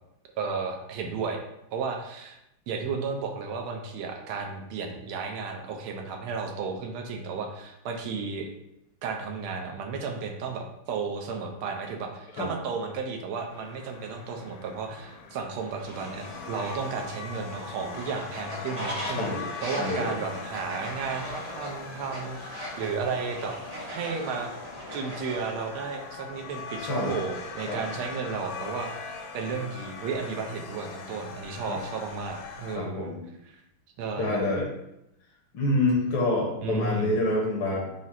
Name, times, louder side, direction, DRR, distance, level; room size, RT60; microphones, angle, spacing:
voice 1, 0.4-1.4 1.7-2.4 2.7-8.5 9.0-23.5 23.9-24.5 24.9-33.1 33.5-33.6 34.0-34.4 36.6-37.2, right 4 dB, 85° right, 3 dB, 1.5 m, -33 dB
sound 1, 13.5-32.8, left 5 dB, 90° left, 1.5 m, -41 dB
Fowl, 15.8-25.5, equal, 60° right, 0.4 m, -40 dB
voice 2, 19.1-19.5 19.8-20.2 26.8-27.2 27.7-27.8 31.7-31.8 32.7-33.2 34.2-34.7 35.5-37.9, left 2 dB, 70° left, -3 dB, 1.6 m, -27 dB
4.9 x 2.1 x 4.1 m, 0.85 s
omnidirectional pair, 2.3 m